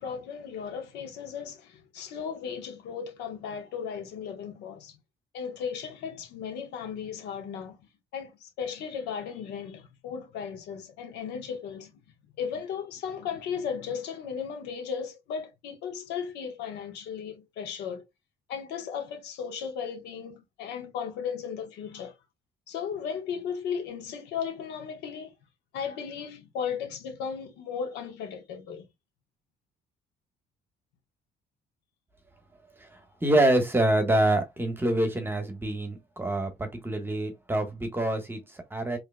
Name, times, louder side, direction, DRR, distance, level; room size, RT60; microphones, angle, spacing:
voice 1, 0.0-5.0 5.3-7.8 8.1-12.0 12.4-18.0 18.5-22.1 22.7-25.3 25.7-28.8, left 7 dB, 85° left, 1.2 m, -36 dB
voice 2, 33.2-39.0, right 1 dB, 15° right, 1.3 m, -26 dB
4.9 x 3.2 x 2.2 m
cardioid pair, 110°, 17 cm